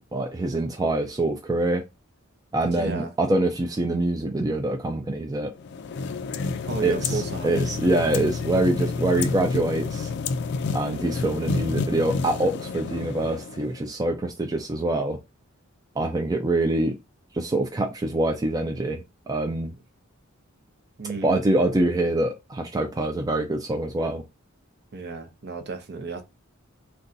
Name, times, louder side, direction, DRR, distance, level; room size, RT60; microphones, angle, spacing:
voice 1, 0.1-1.8 2.5-5.5 6.8-10.1 10.7-15.2 16.0-17.0 17.3-19.7 21.2-24.2, right 2 dB, 20° right, 0.3 m, -25 dB
voice 2, 2.6-3.1 6.6-7.5 21.0-21.4 24.9-26.2, right 4 dB, 55° right, 0.7 m, -33 dB
sound 1, 5.6-13.9, left 4 dB, 55° left, 0.3 m, -29 dB
2.6 x 2.3 x 3.7 m
head